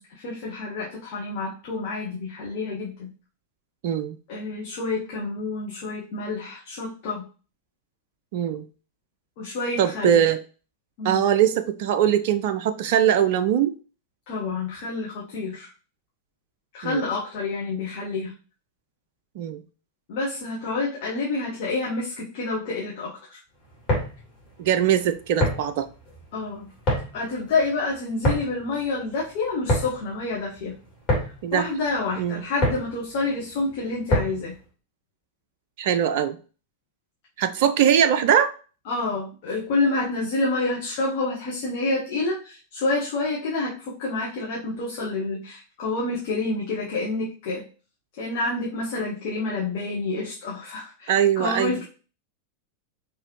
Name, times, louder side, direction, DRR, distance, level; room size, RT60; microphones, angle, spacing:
voice 1, 0.0-3.1 4.3-7.2 9.4-10.2 11.0-11.2 14.3-15.7 16.7-18.3 20.1-23.4 26.3-26.7 27.1-30.7 31.5-34.5 38.9-47.6 48.2-51.8, left 3 dB, 45° left, -4 dB, 1.2 m, -28 dB
voice 2, 3.8-4.2 8.3-8.6 9.8-10.4 11.0-13.7 16.8-17.0 19.4-19.6 24.6-25.9 31.4-31.6 32.2-32.4 35.8-36.4 37.4-38.5 51.1-51.8, right 9 dB, 50° right, 11 dB, 0.3 m, -21 dB
sound 1, 23.7-34.6, equal, 30° left, 2.5 m, -28 dB
4.9 x 3.3 x 3.0 m, 0.37 s
figure-of-eight pair, 90°, 0 cm